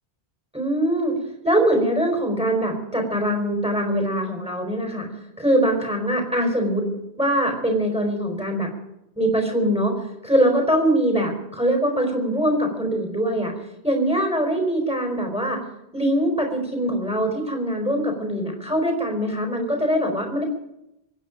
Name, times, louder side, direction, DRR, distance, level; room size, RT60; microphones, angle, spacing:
voice 1, 0.5-5.1 5.4-6.9 7.2-8.7 9.2-10.0 10.2-13.5 13.8-15.6 15.9-20.4, right 1 dB, 5° right, 3 dB, 4.3 m, -22 dB
25.0 x 9.7 x 5.1 m, 0.88 s
omnidirectional pair, 1.1 m